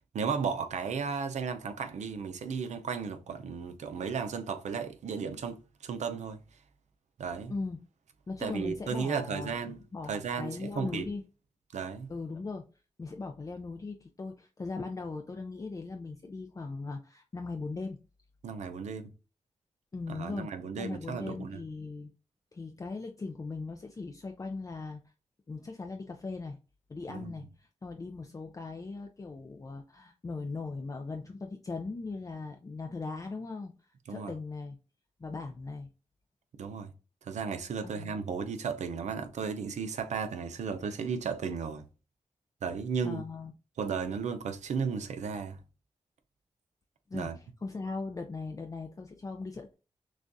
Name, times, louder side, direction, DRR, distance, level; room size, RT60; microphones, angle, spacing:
voice 1, 0.1-6.4 7.2-7.5 8.4-9.8 10.1-11.1 11.7-12.1 18.4-19.1 20.1-21.6 27.1-27.3 34.1-34.3 36.6-36.9 37.2-41.8 42.6-43.2 43.8-45.6 47.1-47.4, right 6 dB, 90° right, 0.6 m, -34 dB
voice 2, 7.5-7.8 8.3-11.2 12.1-12.7 13.0-18.0 19.9-22.1 22.5-25.0 25.5-26.6 26.9-33.7 34.1-34.8 35.2-35.9 37.8-38.2 43.0-43.5 47.1-49.7, left 3 dB, 30° left, 0.4 m, -39 dB
6.2 x 2.3 x 2.6 m
cardioid pair, 80°, 12 cm